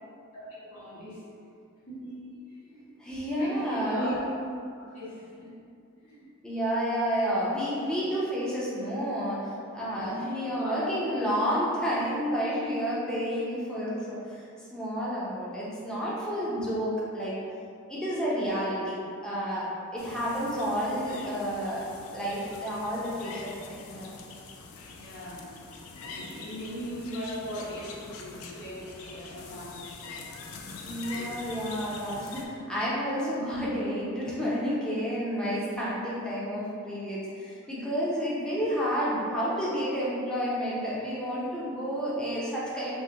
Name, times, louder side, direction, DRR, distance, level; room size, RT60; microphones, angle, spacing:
voice 1, 0.3-1.2 1.9-2.9 3.4-4.3 4.8-5.6 6.0-6.3 9.8-10.9 11.9-12.5 24.9-25.6 25.8-30.3 31.0-31.3, equal, 85° left, -8 dB, 1.0 m, -40 dB
voice 2, 3.0-4.2 6.4-17.4 17.9-21.8 22.1-24.1 30.8-43.0, equal, 5° left, -8 dB, 0.4 m, -30 dB
sound 1, 20.0-32.5, left 4 dB, 70° left, 0.3 m, -44 dB
3.5 x 2.1 x 2.7 m, 2.5 s
head